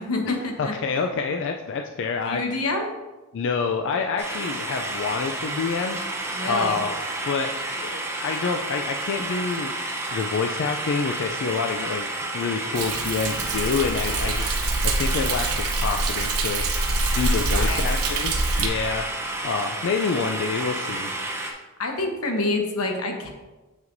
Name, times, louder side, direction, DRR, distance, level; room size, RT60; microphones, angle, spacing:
voice 1, 0.0-0.7 2.2-2.9 6.3-6.8 17.5-17.8 21.8-23.3, left 2 dB, 90° left, 3 dB, 1.1 m, -27 dB
voice 2, 0.6-2.4 3.3-6.0 6.4-6.9 7.2-7.5 7.8-9.7 10.1-12.1 12.3-14.6 14.8-16.6 17.1-18.3 18.6-19.1 19.4-21.1, left 5 dB, 55° left, 4 dB, 0.4 m, -27 dB
sound 1, 4.2-21.5, right 2 dB, 10° right, 0.7 m, -31 dB
Thunder, 12.7-18.7, right 2 dB, 80° right, 0.7 m, -25 dB
7.5 x 5.7 x 2.6 m, 1.2 s
head